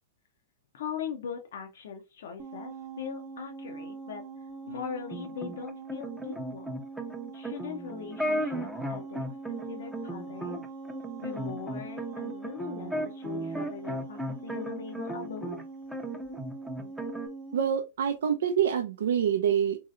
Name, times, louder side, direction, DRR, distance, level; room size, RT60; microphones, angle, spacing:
voice 1, 0.7-4.2 4.7-6.8 7.3-10.6 11.2-15.6, left 7 dB, 70° left, 0.6 m, -40 dB
sound 1, 2.4-17.8, right 4 dB, 40° right, 0.8 m, -43 dB
sound 2, 5.1-15.6 15.9-17.3, right 1 dB, 5° right, 0.6 m, -35 dB
voice 2, 17.5-19.8, right 8 dB, 70° right, 0.4 m, -26 dB
3.1 x 2.7 x 2.4 m
hypercardioid pair, 110°, 0 cm